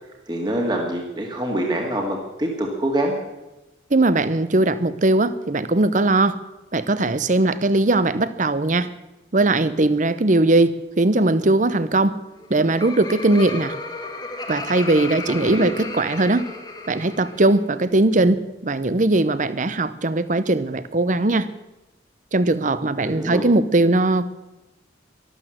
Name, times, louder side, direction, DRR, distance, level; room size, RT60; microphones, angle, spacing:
voice 1, 0.3-3.1 15.3-15.7 23.0-23.4, right 1 dB, 25° right, 0 dB, 2.0 m, -25 dB
voice 2, 3.9-6.4 6.7-8.9 9.3-12.2 12.5-13.7 14.5-16.5 16.9-21.5 22.3-24.3, right 2 dB, 40° right, 14 dB, 0.8 m, -19 dB
Laughter, 12.3-17.5, left 3 dB, 20° left, 1.7 m, -34 dB
12.5 x 12.0 x 7.8 m, 1.0 s
head